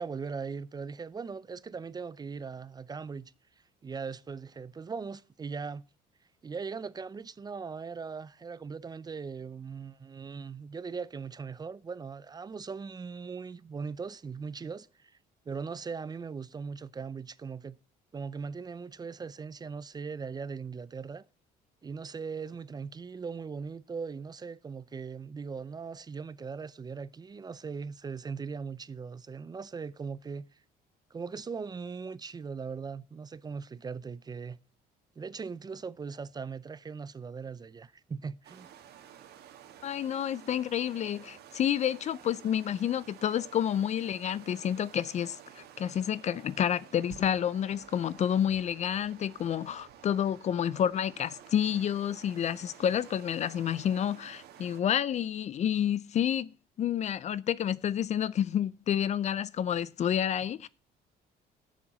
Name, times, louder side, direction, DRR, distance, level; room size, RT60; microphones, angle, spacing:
voice 1, 0.0-3.3 3.8-5.9 6.4-15.1 15.5-17.8 18.1-21.2 21.8-30.5 31.1-34.6 35.2-38.7, right 5 dB, 25° right, 0.5 m, -39 dB
sound 1, 38.4-54.8, right 10 dB, 70° right, 1.6 m, -52 dB
voice 2, 39.8-56.5 56.8-60.7, left 9 dB, 40° left, 0.4 m, -29 dB
7.3 x 7.1 x 7.4 m
cardioid pair, 110°, 17 cm